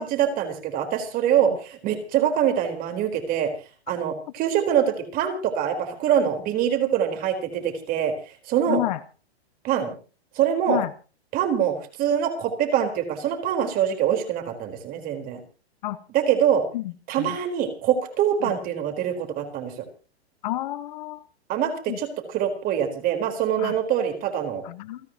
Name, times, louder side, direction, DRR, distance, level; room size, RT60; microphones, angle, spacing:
voice 1, 0.0-3.5 3.9-8.8 9.6-9.9 10.3-10.8 11.3-15.4 16.1-16.6 17.1-19.8 21.5-24.6, right 9 dB, 25° right, 6 dB, 4.2 m, -24 dB
voice 2, 8.7-9.0 10.7-10.9 15.8-16.0 16.7-16.9 17.2-17.4 20.4-21.2 21.9-22.0 23.6-23.7 24.6-25.0, left 15 dB, 45° left, 13 dB, 1.1 m, -29 dB
29.0 x 10.0 x 2.9 m, 0.36 s
hypercardioid pair, 150°, 32 cm